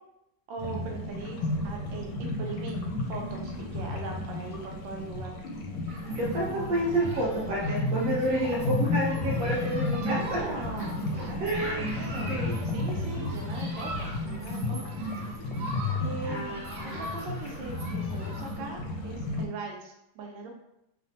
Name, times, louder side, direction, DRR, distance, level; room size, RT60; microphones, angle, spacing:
voice 1, 0.5-5.3 10.0-15.1 16.0-16.6 16.9-20.5, right 3 dB, 80° right, 1 dB, 1.3 m, -40 dB
sound 1, 0.6-19.5, left 2 dB, 85° left, 1.3 m, -33 dB
Human group actions, 5.9-18.6, right 1 dB, 35° right, 1.2 m, -43 dB
voice 2, 6.1-10.4 11.4-12.0 12.3-12.5 16.2-17.0, right 1 dB, 55° right, -4 dB, 1.1 m, -29 dB
3.2 x 2.1 x 2.7 m, 0.84 s
omnidirectional pair, 2.1 m